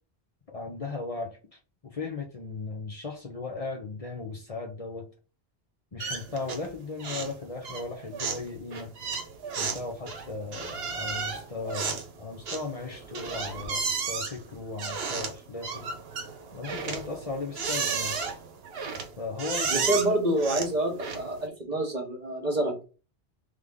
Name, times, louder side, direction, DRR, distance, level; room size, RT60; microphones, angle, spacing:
voice 1, 0.5-5.1 5.9-8.9 9.6-15.8 16.5-18.2 19.2-19.9, left 3 dB, 40° left, 1 dB, 0.8 m, -37 dB
sound 1, 6.0-6.7 7.0-7.4 7.6-21.5, right 5 dB, 75° right, 1.0 m, -33 dB
voice 2, 19.7-22.8, right 1 dB, 45° right, 2 dB, 1.2 m, -27 dB
3.4 x 3.3 x 3.7 m, 0.34 s
omnidirectional pair, 1.0 m